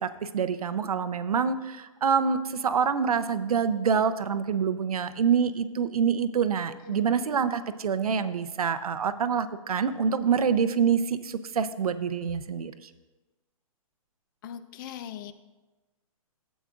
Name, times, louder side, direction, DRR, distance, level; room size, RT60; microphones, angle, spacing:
voice 1, 0.0-12.7, right 6 dB, 85° right, 11 dB, 0.6 m, -26 dB
voice 2, 14.4-15.3, left 10 dB, 35° left, 13 dB, 0.4 m, -40 dB
13.0 x 8.1 x 2.4 m, 1.2 s
hypercardioid pair, 135°, 18 cm